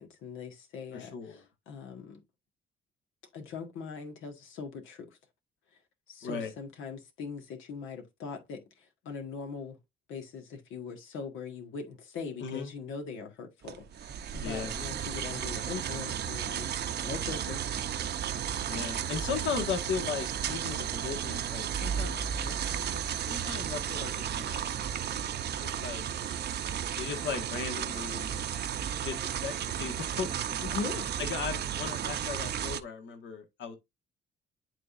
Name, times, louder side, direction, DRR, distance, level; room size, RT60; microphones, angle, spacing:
voice 1, 0.0-2.2 3.3-5.1 6.1-8.6 9.0-9.8 10.1-16.7 17.0-17.6 30.6-31.1, left 5 dB, 90° left, 1.7 m, -41 dB
voice 2, 0.9-1.4 6.2-6.5 12.4-12.7 14.3-14.8 18.7-25.3 25.6-26.0 27.0-28.4 29.0-29.5 29.8-30.8 31.2-33.8, left 6 dB, 70° left, 1.6 m, -37 dB
sound 1, 13.6-32.8, right 9 dB, 55° right, 0.8 m, -34 dB
11.0 x 3.8 x 2.6 m
cardioid pair, 90°, 20 cm